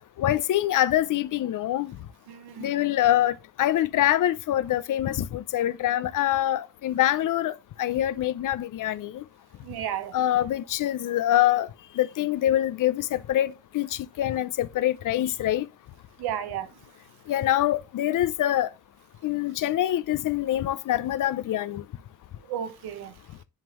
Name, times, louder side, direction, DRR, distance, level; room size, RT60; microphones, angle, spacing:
voice 1, 0.2-1.9 2.6-9.2 10.1-11.7 12.0-15.7 17.3-18.7 19.2-21.8, left 13 dB, 55° left, 0.5 m, -25 dB
voice 2, 2.3-2.7 9.6-10.2 16.2-16.9 22.4-23.2, right 10 dB, 85° right, 1.0 m, -33 dB
10.5 x 3.6 x 3.0 m
cardioid pair, 105°, 38 cm